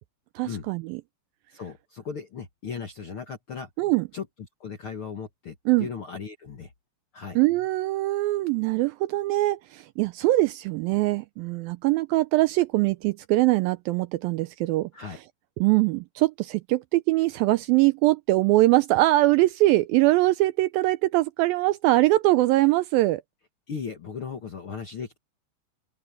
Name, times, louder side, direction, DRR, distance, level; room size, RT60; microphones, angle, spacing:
voice 1, 0.4-1.0 3.8-4.1 5.7-5.9 7.4-14.9 15.6-23.2, right 18 dB, 80° right, 2.1 m, -22 dB
voice 2, 1.5-3.7 4.1-6.7 7.1-7.4 14.9-15.2 23.7-25.2, left 6 dB, 55° left, 1.4 m, -37 dB
omnidirectional pair, 4.5 m